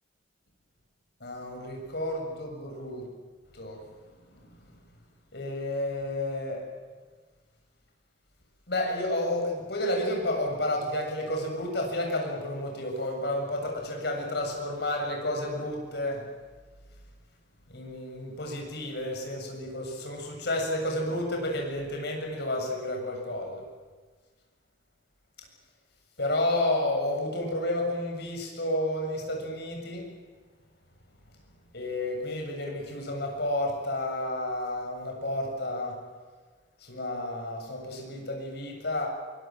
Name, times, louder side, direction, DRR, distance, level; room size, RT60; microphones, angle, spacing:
voice 1, 1.2-3.1 3.5-3.8 4.3-4.7 5.3-6.7 8.7-16.2 17.7-23.6 26.2-30.1 31.7-36.0 36.8-39.1, left 1 dB, 65° left, 2 dB, 7.5 m, -31 dB
24.5 x 23.0 x 7.7 m, 1.4 s
head